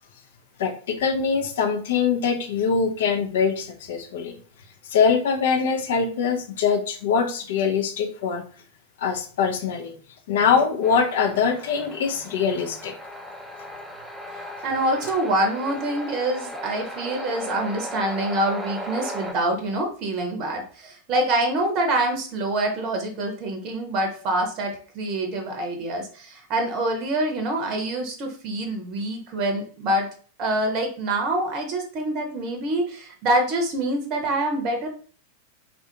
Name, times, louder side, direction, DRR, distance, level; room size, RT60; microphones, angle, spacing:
voice 1, 0.6-4.4 4.9-8.4 9.0-10.0 10.3-12.9, left 6 dB, 55° left, 4 dB, 0.5 m, -23 dB
sound 1, 10.8-19.3, equal, 5° right, 0.5 m, -36 dB
voice 2, 14.6-30.1 30.4-34.9, right 1 dB, 40° right, 4 dB, 0.7 m, -26 dB
3.6 x 2.4 x 2.7 m, 0.42 s
figure-of-eight pair, 90°, 0 cm